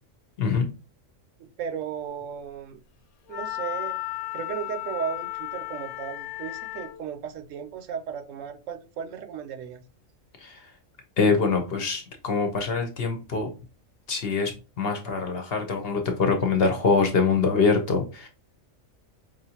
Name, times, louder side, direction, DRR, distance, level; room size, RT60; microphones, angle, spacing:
voice 1, 0.4-0.7 10.4-10.6 11.2-13.5 14.1-14.5 14.8-18.3, left 4 dB, 55° left, 4 dB, 0.8 m, -24 dB
voice 2, 1.4-2.8 3.3-4.0 4.3-9.8, right 8 dB, 75° right, 8 dB, 1.0 m, -35 dB
Wind instrument woodwind instrument, 3.3-7.0, left 17 dB, 85° left, 1.0 m, -34 dB
4.9 x 2.6 x 2.8 m, 0.32 s
omnidirectional pair, 1.4 m